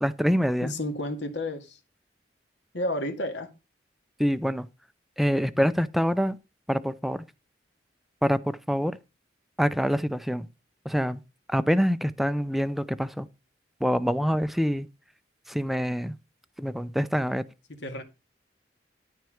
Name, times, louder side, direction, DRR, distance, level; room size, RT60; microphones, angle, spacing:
voice 1, 0.0-0.7 4.2-4.7 5.2-6.4 6.7-7.2 8.2-9.0 9.6-10.5 10.8-11.2 11.5-13.3 13.8-14.9 15.5-16.2 16.6-17.4, equal, ahead, 0.5 m, -25 dB
voice 2, 0.6-1.8 2.7-3.5 17.8-18.0, left 1 dB, 70° left, 2.1 m, -31 dB
12.5 x 4.6 x 6.4 m
head